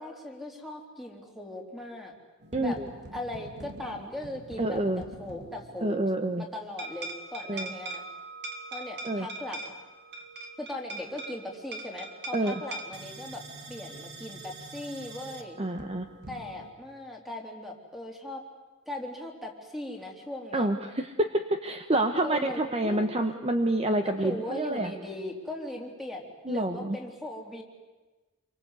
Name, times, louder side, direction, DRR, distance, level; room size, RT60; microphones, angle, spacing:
voice 1, 0.0-2.1 2.6-2.8 3.1-6.0 6.4-8.0 8.7-9.7 10.6-15.6 16.3-18.4 18.9-20.7 22.2-23.1 24.0-27.6, left 1 dB, ahead, 1 dB, 3.5 m, -39 dB
sound 1, 2.4-6.0 6.8-16.7, right 2 dB, 50° right, 2.6 m, -43 dB
voice 2, 2.5-2.9 4.6-5.0 5.8-6.5 7.5-7.7 9.0-9.3 12.3-12.5 15.6-16.1 20.5-24.9 26.4-27.0, right 1 dB, 25° right, 7 dB, 1.1 m, -28 dB
27.5 x 24.0 x 8.3 m, 1.2 s
head